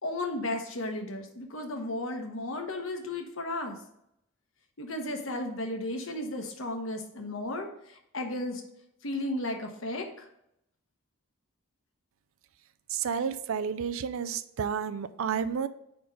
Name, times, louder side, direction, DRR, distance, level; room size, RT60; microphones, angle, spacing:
voice 1, 0.0-3.8 4.8-8.6 9.0-10.3, left 1 dB, 65° left, 4 dB, 1.0 m, -34 dB
voice 2, 12.9-15.7, right 7 dB, 70° right, 13 dB, 0.4 m, -31 dB
5.0 x 4.4 x 5.3 m, 0.78 s
head